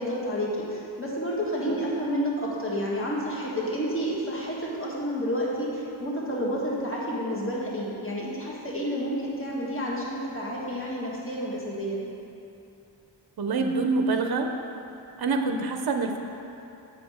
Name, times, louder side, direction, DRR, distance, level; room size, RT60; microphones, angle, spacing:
voice 1, 0.0-12.0, equal, 25° left, -5 dB, 1.6 m, -30 dB
voice 2, 13.4-14.5 15.2-16.2, right 3 dB, 55° right, 5 dB, 0.6 m, -26 dB
7.9 x 5.0 x 5.0 m, 2.9 s
wide cardioid pair, 65°, 46 cm